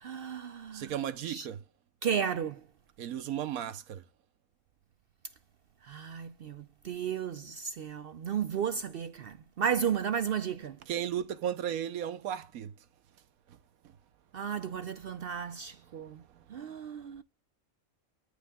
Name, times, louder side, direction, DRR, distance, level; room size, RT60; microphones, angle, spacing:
voice 1, 0.0-0.9 1.3-1.4 2.0-2.6 5.9-10.7 14.3-16.2 16.5-17.2, right 8 dB, 65° right, 0.6 m, -33 dB
voice 2, 0.7-1.6 3.0-4.0 10.9-12.7 13.5-13.6 15.4-16.8, right 10 dB, 85° right, 1.3 m, -36 dB
9.9 x 5.1 x 3.5 m
omnidirectional pair, 1.5 m